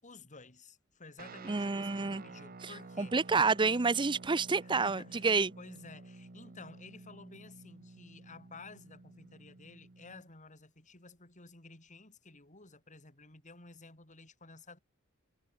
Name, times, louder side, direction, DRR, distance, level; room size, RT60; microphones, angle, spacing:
voice 1, 0.0-3.2 4.6-14.8, left 3 dB, 35° left, 5.3 m, -53 dB
Guitar, 1.2-10.3, right 3 dB, 45° right, 1.0 m, -51 dB
voice 2, 1.5-2.2 2.6-2.7 3.0-5.5, right 4 dB, 25° right, 0.6 m, -29 dB
head